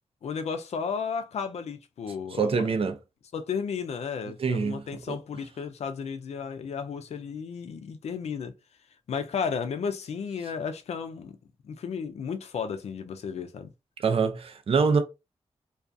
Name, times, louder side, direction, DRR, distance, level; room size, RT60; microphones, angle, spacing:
voice 1, 0.2-2.5 3.3-8.5 9.1-11.4 11.6-13.7, left 6 dB, 75° left, 0.4 m, -33 dB
voice 2, 2.4-3.0 4.4-5.2 14.0-15.0, right 5 dB, 60° right, 0.5 m, -25 dB
2.4 x 2.3 x 2.5 m
wide cardioid pair, 105°, 11 cm